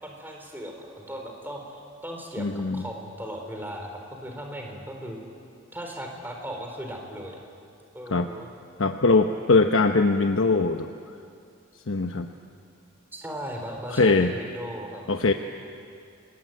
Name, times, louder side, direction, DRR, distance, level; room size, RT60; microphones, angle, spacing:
voice 1, 0.0-5.2 5.7-7.4 7.9-8.5 13.1-15.0, equal, 10° right, 1 dB, 4.0 m, -37 dB
voice 2, 2.4-2.8 8.1-8.3 8.8-10.9 11.9-12.3 13.9-14.3 15.1-15.3, left 3 dB, 80° left, 5 dB, 1.0 m, -21 dB
28.5 x 20.5 x 9.1 m, 2.4 s
head